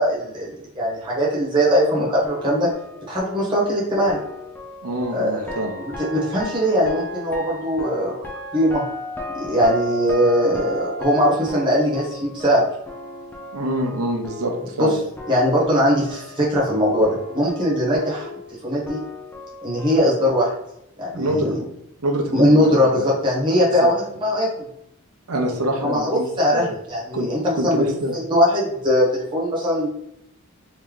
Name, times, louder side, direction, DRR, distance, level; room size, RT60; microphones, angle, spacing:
voice 1, 0.0-2.7 3.1-4.2 5.1-8.1 8.5-8.8 9.3-12.6 14.8-14.9 15.3-18.3 18.6-19.0 19.6-20.5 21.0-21.6 22.3-24.7 25.8-27.8 28.1-29.9, equal, 20° right, -6 dB, 1.2 m, -20 dB
sound 1, 2.2-14.9 15.2-20.0, equal, 10° left, 0.4 m, -35 dB
voice 2, 4.8-5.8 13.5-15.0 21.1-21.7 22.0-23.1 23.5-23.6 25.3-26.7 27.1-28.1, right 1 dB, 80° right, 1 dB, 0.8 m, -25 dB
3.2 x 2.9 x 3.7 m, 0.79 s
head